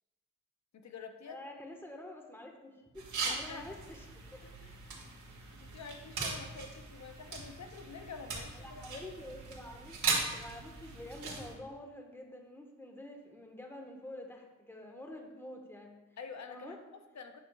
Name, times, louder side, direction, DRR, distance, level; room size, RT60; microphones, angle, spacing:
voice 1, 0.7-1.5 3.2-3.6 4.6-4.7 5.4-9.2 16.2-17.4, left 5 dB, 65° left, 6 dB, 0.9 m, -48 dB
voice 2, 1.3-4.1 4.3-4.4 8.5-16.0 16.5-16.8, left 1 dB, 10° left, 2 dB, 1.4 m, -48 dB
sound 1, 2.9-11.5, right 4 dB, 85° right, 1.9 m, -39 dB
9.3 x 6.7 x 2.4 m, 1.1 s
cardioid pair, 55°, 29 cm